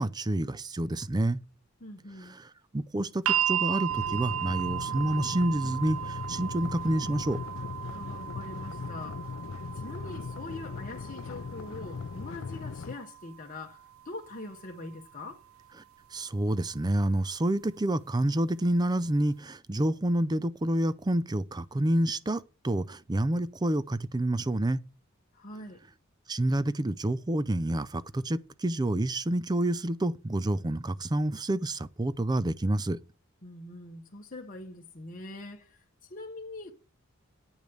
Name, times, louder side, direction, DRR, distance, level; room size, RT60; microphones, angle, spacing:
voice 1, 0.0-1.4 2.4-2.5 2.7-7.4 16.1-24.8 26.3-33.0, right 1 dB, 20° right, 0.5 m, -28 dB
voice 2, 1.8-2.4 7.9-9.3 9.7-15.4 25.3-25.8 33.4-36.7, left 2 dB, 40° left, 1.1 m, -43 dB
sound 1, 3.3-15.3 16.4-16.5, right 11 dB, 75° right, 0.5 m, -36 dB
sound 2, 3.9-13.0, left 5 dB, 65° left, 0.4 m, -39 dB
9.0 x 5.2 x 7.9 m
head